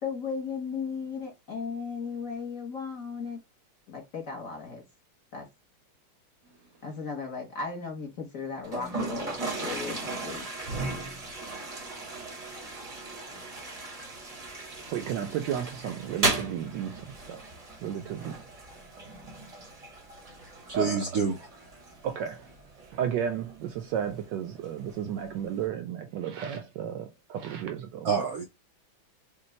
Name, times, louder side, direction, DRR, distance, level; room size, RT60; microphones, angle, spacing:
voice 1, 0.0-3.4 3.9-4.8 5.3-5.5 6.8-10.4, left 5 dB, 50° left, 1.2 m, -36 dB
Toilet flush, 8.6-25.7, right 2 dB, 35° right, 0.6 m, -37 dB
voice 2, 14.9-17.4 17.8-18.4 20.7-21.1 22.0-22.5 22.9-28.3, right 9 dB, 75° right, 1.1 m, -33 dB
voice 3, 20.7-21.3 28.0-28.4, right 5 dB, 90° right, 0.7 m, -27 dB
5.4 x 2.3 x 3.1 m
omnidirectional pair, 2.3 m